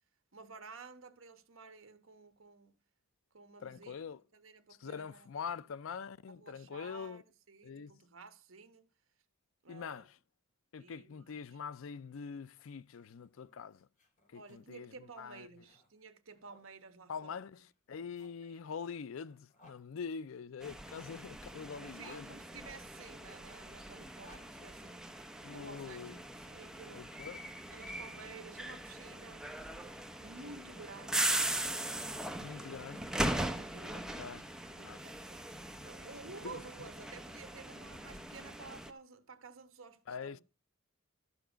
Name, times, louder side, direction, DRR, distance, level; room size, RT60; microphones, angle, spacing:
voice 1, 0.3-2.8 3.3-5.6 6.4-8.9 9.6-10.1 10.8-11.4 14.3-17.5 18.2-18.6 20.6-20.8 21.7-25.1 25.5-27.1 27.7-29.5 30.2-31.4 32.5-33.0 33.5-35.4 35.8-40.4, right 4 dB, 70° right, 1.2 m, -53 dB
voice 2, 3.6-4.2 4.8-7.2 7.6-8.0 9.7-10.2 10.7-13.9 14.3-15.5 17.1-22.3 25.4-26.2 26.9-27.4 32.4-33.1 33.9-34.5 34.9-35.0 36.4-36.6 40.1-40.4, left 6 dB, 70° left, 0.4 m, -44 dB
sound 1, 12.0-16.7 17.6-19.8 20.7-23.1 23.9-25.5, equal, 35° left, 3.2 m, -64 dB
sound 2, 20.6-38.9, right 1 dB, 5° right, 0.8 m, -40 dB
12.5 x 7.0 x 5.0 m
head